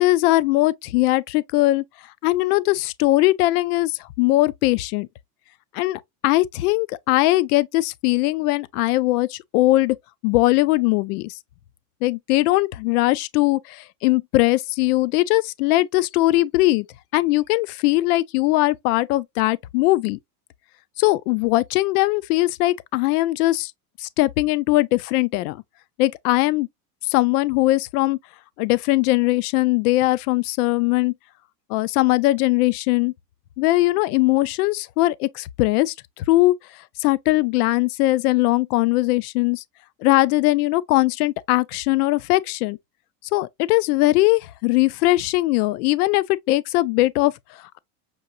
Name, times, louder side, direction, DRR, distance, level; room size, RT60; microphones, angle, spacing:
voice 1, 0.0-1.8 2.2-5.1 5.7-10.0 10.2-11.3 12.0-16.9 17.1-20.2 21.0-23.7 24.0-25.6 26.0-26.7 27.1-28.2 28.6-31.1 31.7-33.1 33.6-36.5 37.0-39.6 40.0-42.8 43.3-47.8, left 18 dB, 75° left, 0.6 m, -20 dB
6.3 x 2.7 x 2.5 m
supercardioid pair, 145°, 46 cm